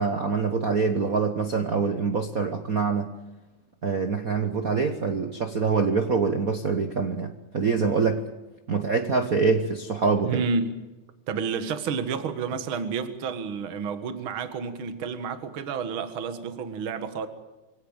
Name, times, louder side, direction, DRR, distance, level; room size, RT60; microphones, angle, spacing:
voice 1, 0.0-3.1 3.8-8.2 8.7-10.4, right 4 dB, 85° right, 0.7 m, -25 dB
voice 2, 10.2-10.8 11.3-17.3, right 5 dB, 45° right, 2.2 m, -30 dB
25.0 x 17.5 x 8.9 m
omnidirectional pair, 3.5 m